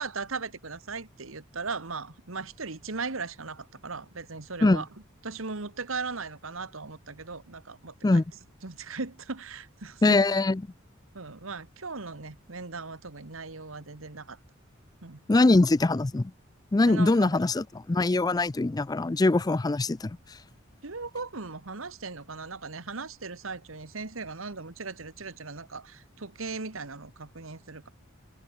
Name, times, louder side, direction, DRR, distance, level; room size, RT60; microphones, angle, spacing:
voice 1, 0.0-4.9 5.2-8.2 8.6-10.4 11.1-14.4 15.0-15.2 16.9-17.3 20.8-27.9, right 4 dB, 80° right, 1.7 m, -38 dB
voice 2, 10.0-10.6 15.3-16.3 16.7-20.2, left 2 dB, 20° left, 0.4 m, -22 dB
head